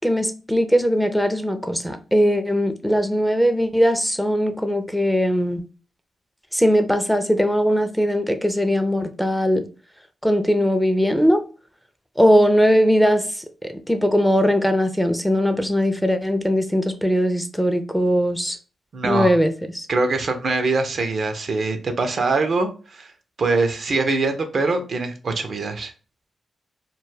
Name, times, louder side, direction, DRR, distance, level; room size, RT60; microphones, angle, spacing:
voice 1, 0.0-5.6 6.5-9.7 10.2-11.4 12.2-18.6 19.0-19.9, equal, ahead, 0.4 m, -20 dB
voice 2, 18.9-19.3 19.9-23.1 23.4-25.9, right 3 dB, 60° right, 0.5 m, -23 dB
2.2 x 2.0 x 3.1 m
supercardioid pair, 45°, 0 cm